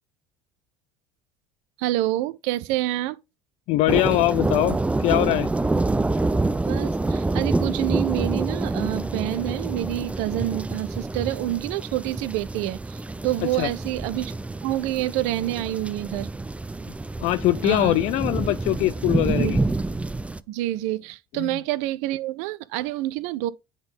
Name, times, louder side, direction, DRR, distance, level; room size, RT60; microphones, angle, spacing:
voice 1, 1.8-3.2 6.7-14.4 14.6-16.3 17.6-18.0 19.3-19.5 20.5-23.5, right 15 dB, 60° right, 0.5 m, -27 dB
voice 2, 3.7-5.5 13.6-13.7 17.2-19.6 21.4-21.5, left 16 dB, 55° left, 0.4 m, -22 dB
sound 1, 3.9-20.4, right 2 dB, 10° right, 0.5 m, -27 dB
9.5 x 3.7 x 3.8 m
figure-of-eight pair, 60°, 13 cm